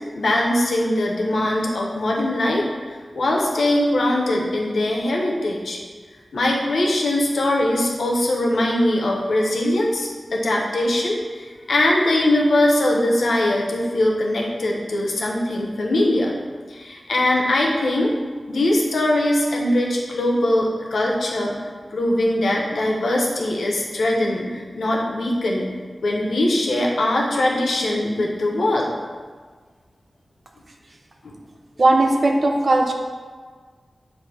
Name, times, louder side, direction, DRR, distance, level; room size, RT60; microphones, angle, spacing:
voice 1, 0.1-2.6 2.9-5.8 6.3-16.3 16.7-18.1 18.5-25.7 26.0-28.9 31.2-31.3, left 1 dB, 85° left, -1 dB, 0.9 m, -21 dB
voice 2, 31.8-32.9, right 2 dB, 60° right, 2 dB, 0.7 m, -17 dB
7.3 x 2.7 x 4.8 m, 1.5 s
cardioid pair, 50°, 0 cm